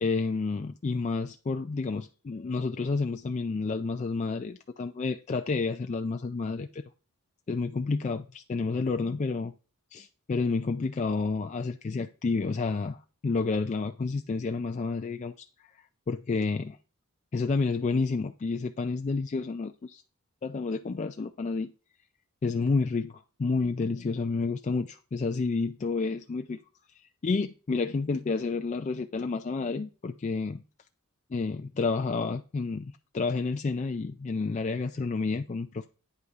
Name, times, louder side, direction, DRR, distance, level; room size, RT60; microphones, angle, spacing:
voice 1, 0.0-6.8 7.5-9.5 9.9-15.5 16.1-16.8 17.3-20.0 20.4-21.7 22.4-26.6 27.2-30.6 31.3-35.9, left 4 dB, 30° left, 6 dB, 0.3 m, -30 dB
9.2 x 8.4 x 2.5 m, 0.35 s
head